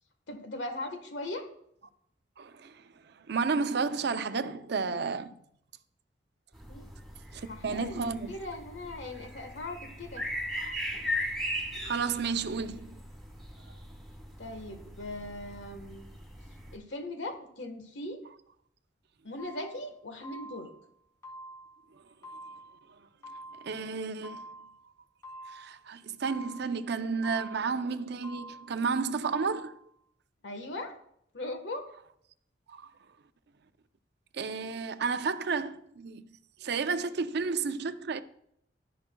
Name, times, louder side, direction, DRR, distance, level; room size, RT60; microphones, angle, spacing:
voice 1, 0.3-1.5 6.7-6.9 7.3-10.3 14.4-16.1 16.7-18.2 19.2-20.7 30.4-31.0 31.3-31.9, left 2 dB, 80° left, 1.4 m, -39 dB
voice 2, 2.4-2.7 3.3-5.3 7.6-8.3 10.6-10.8 11.8-13.0 23.6-24.7 25.5-29.7 32.7-32.9 34.3-36.2 36.6-38.2, right 5 dB, 65° right, 0.5 m, -32 dB
sound 1, 6.5-16.8, left 1 dB, ahead, 2.0 m, -39 dB
sound 2, 19.4-19.8 20.2-20.8 21.2-21.8 22.2-22.8 23.2-23.8 24.2-24.8 25.2-25.8 26.2-26.8 27.2-27.8 28.2-28.8 29.2-29.8, right 1 dB, 20° left, 2.3 m, -47 dB
12.0 x 10.5 x 2.3 m
head